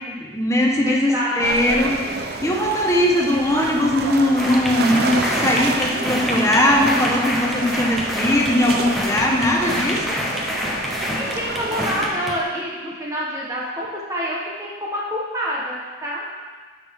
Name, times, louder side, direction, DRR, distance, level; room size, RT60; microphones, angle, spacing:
voice 1, 0.1-2.0 2.4-10.2, left 1 dB, 15° left, -1 dB, 1.1 m, -20 dB
voice 2, 0.8-1.7 11.1-16.3, equal, 20° right, -5 dB, 1.4 m, -27 dB
sound 1, 1.4-12.1, right 3 dB, 60° right, 0.7 m, -29 dB
sound 2, 4.4-12.4, left 1 dB, ahead, 1.0 m, -27 dB
12.5 x 5.8 x 3.7 m, 1.5 s
head